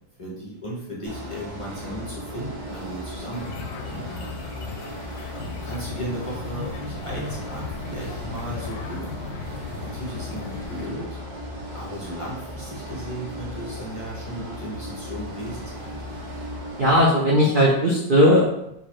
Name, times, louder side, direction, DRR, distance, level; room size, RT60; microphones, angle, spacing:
voice 1, 0.2-4.0 5.3-9.4 9.8-11.2 11.7-16.0, right 1 dB, 40° left, -5 dB, 0.4 m, -35 dB
sound 1, 1.1-17.1, equal, 45° right, 1.5 m, -36 dB
sound 2, 3.3-10.9, left 5 dB, 75° left, 1.1 m, -37 dB
voice 2, 16.8-18.7, equal, 75° right, -5 dB, 0.4 m, -18 dB
3.8 x 2.9 x 4.6 m, 0.81 s
omnidirectional pair, 2.2 m